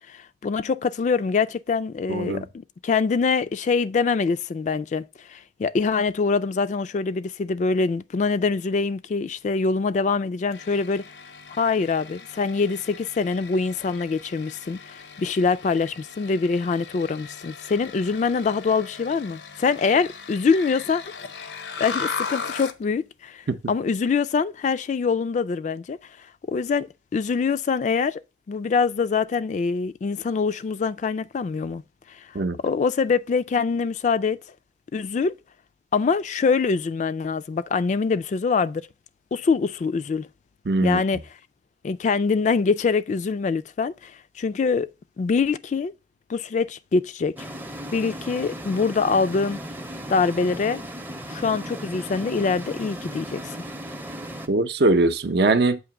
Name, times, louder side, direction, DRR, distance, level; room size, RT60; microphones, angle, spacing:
voice 1, 0.1-11.0 11.6-21.0 21.4-21.5 21.8-26.0 26.5-28.2 28.5-31.8 32.2-34.4 34.9-35.3 35.9-38.8 39.3-40.3 40.8-41.2 41.8-44.9 45.2-45.9 46.3-47.5 47.9-49.6 50.1-50.8 51.3-53.4, left 4 dB, 45° left, 0.3 m, -24 dB
voice 2, 2.1-2.4 23.5-23.6 32.3-32.6 40.7-41.0 54.5-55.8, right 2 dB, 65° right, 0.6 m, -21 dB
sound 1, 10.5-22.8, left 5 dB, 80° left, 0.7 m, -38 dB
sound 2, 47.4-54.5, equal, 10° right, 0.6 m, -36 dB
7.7 x 2.9 x 5.8 m
head